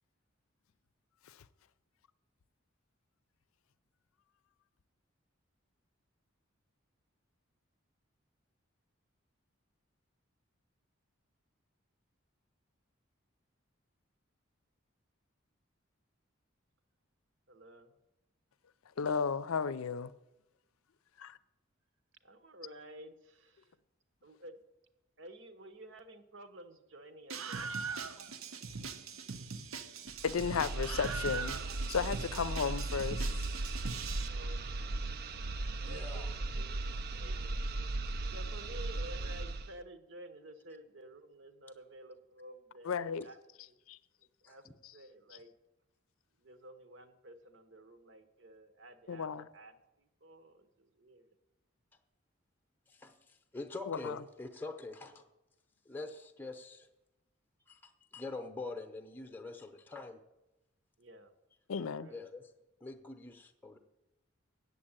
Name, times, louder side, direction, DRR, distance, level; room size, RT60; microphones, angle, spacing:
voice 1, 17.5-18.0 22.2-23.7 24.2-24.6 25.2-27.7 28.4-29.0 34.2-35.1 35.5-37.5 38.3-43.4 43.6-43.8 44.4-44.6 44.9-45.5 46.4-49.3 49.5-49.7 50.2-51.3 61.0-61.3 62.0-62.2, right 1 dB, 65° right, 1.0 m, -52 dB
voice 2, 19.0-20.1 21.2-21.4 30.2-33.5 42.8-43.3 43.9-44.0 44.8-44.9 45.3-45.4 49.1-49.5 53.9-54.2 61.7-62.1, left 6 dB, 90° left, 0.5 m, -34 dB
Screaming, 27.3-34.3, right 5 dB, 90° right, 0.8 m, -41 dB
sound 1, 30.1-39.8, right 2 dB, 45° right, 0.4 m, -37 dB
voice 3, 35.8-36.3 44.5-44.8 52.9-55.2 55.9-56.9 57.7-60.2 62.1-62.5 62.8-63.8, left 3 dB, 10° left, 0.7 m, -45 dB
8.4 x 7.5 x 8.8 m
head